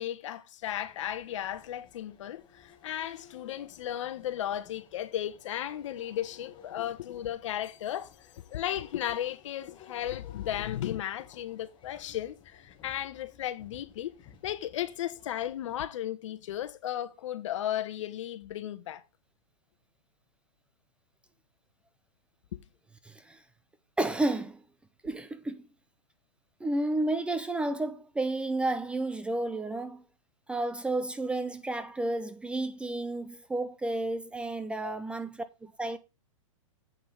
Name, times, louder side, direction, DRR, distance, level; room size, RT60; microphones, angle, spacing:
voice 1, 0.0-8.1 8.5-14.2 14.4-19.0 22.5-22.6 34.8-35.0, left 11 dB, 65° left, 1.2 m, -35 dB
sound 1, 0.6-15.8, left 8 dB, 30° left, 2.0 m, -56 dB
voice 2, 23.0-23.4 24.0-24.6 25.0-25.6 26.6-30.0 30.5-35.3 35.6-36.0, right 2 dB, 5° right, 0.5 m, -31 dB
8.2 x 5.5 x 5.4 m
hypercardioid pair, 135°, 17 cm